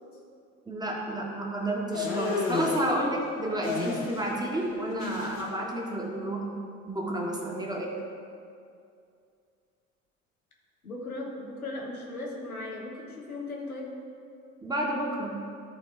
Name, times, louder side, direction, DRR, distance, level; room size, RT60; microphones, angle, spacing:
voice 1, 0.7-6.6 6.9-7.9 14.6-15.4, right 1 dB, 10° right, -1 dB, 1.5 m, -31 dB
sound 1, 1.9-2.9 3.6-4.4 4.6-5.4, left 3 dB, 70° left, 1.5 m, -31 dB
voice 2, 10.8-13.9, left 2 dB, 85° left, -1 dB, 1.3 m, -37 dB
13.0 x 4.4 x 4.5 m, 2.4 s
figure-of-eight pair, 65°, 42 cm